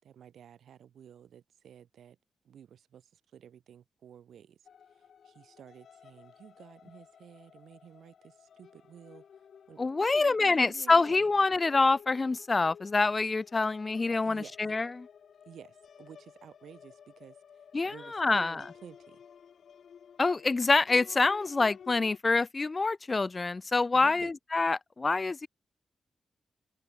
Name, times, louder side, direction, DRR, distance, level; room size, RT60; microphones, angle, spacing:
voice 1, 0.0-2.2 2.4-4.6 4.9-9.2 9.7-11.3 14.2-14.6 15.5-19.2 23.9-24.3, right 9 dB, 85° right, 6.8 m, -52 dB
sound 1, 4.7-22.2, left 7 dB, 65° left, 7.6 m, -54 dB
voice 2, 9.8-15.1 17.7-18.6 20.2-25.5, left 3 dB, 25° left, 0.3 m, -26 dB
open air
wide cardioid pair, 135°, 0 cm